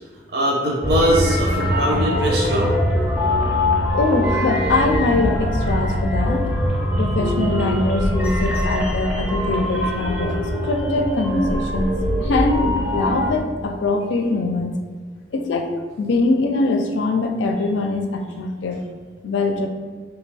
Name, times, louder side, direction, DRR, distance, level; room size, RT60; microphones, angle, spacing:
voice 1, 0.3-2.7, right 1 dB, 60° right, -3 dB, 0.6 m, -21 dB
sound 1, 0.8-13.3, equal, 5° right, 0.4 m, -22 dB
voice 2, 3.9-6.5 7.0-11.9 12.2-14.8 15.3-15.7 16.0-18.8 19.2-19.7, left 3 dB, 80° left, 4 dB, 0.4 m, -22 dB
3.2 x 2.3 x 3.3 m, 1.5 s
head